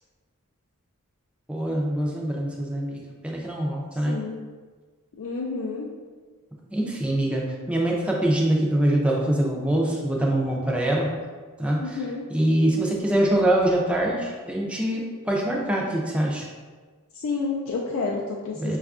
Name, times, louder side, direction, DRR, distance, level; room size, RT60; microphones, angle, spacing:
voice 1, 1.5-4.2 6.7-11.1 11.6-16.5 18.6-18.8, right 1 dB, 5° right, -2 dB, 0.4 m, -24 dB
voice 2, 4.1-4.4 5.2-5.9 11.8-12.2 17.2-18.8, left 4 dB, 65° left, -2 dB, 0.4 m, -29 dB
5.2 x 2.3 x 2.4 m, 1.4 s
head